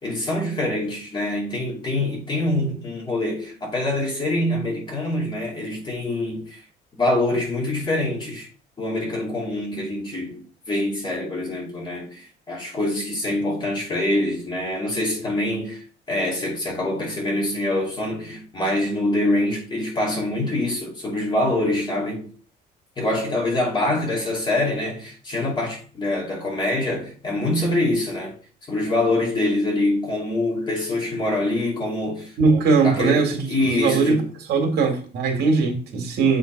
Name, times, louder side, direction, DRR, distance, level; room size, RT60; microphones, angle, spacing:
voice 1, 0.0-6.6 7.0-8.5 8.8-22.3 23.0-28.3 28.7-32.3 32.8-34.2, left 1 dB, 25° left, 2.7 m, -25 dB
voice 2, 32.4-34.2 34.5-36.4, right 4 dB, 70° right, 2.1 m, -20 dB
7.9 x 3.9 x 4.5 m
cardioid pair, 145°, 18 cm